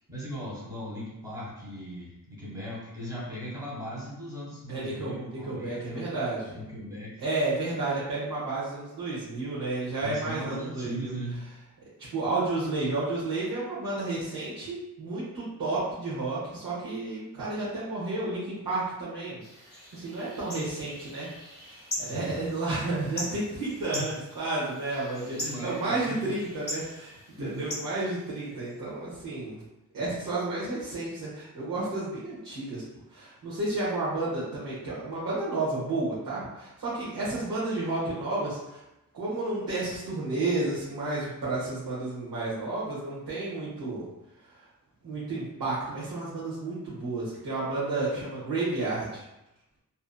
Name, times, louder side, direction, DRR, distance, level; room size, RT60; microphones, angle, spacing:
voice 1, 0.1-6.1 6.5-7.2 10.0-11.4 22.0-22.4 23.8-24.1 25.3-26.3 27.4-27.7 28.1-28.2, equal, 10° right, -7 dB, 1.1 m, -38 dB
voice 2, 4.7-6.6 7.2-11.1 12.0-21.3 21.6-29.6 29.9-32.8 33.1-38.8 39.1-44.1 44.5-44.6 45.0-49.3, right 2 dB, 70° right, -9 dB, 0.9 m, -31 dB
sound 1, 19.4-28.8, left 1 dB, 30° left, 0.9 m, -41 dB
2.7 x 2.4 x 2.2 m, 0.93 s
wide cardioid pair, 115°, 35 cm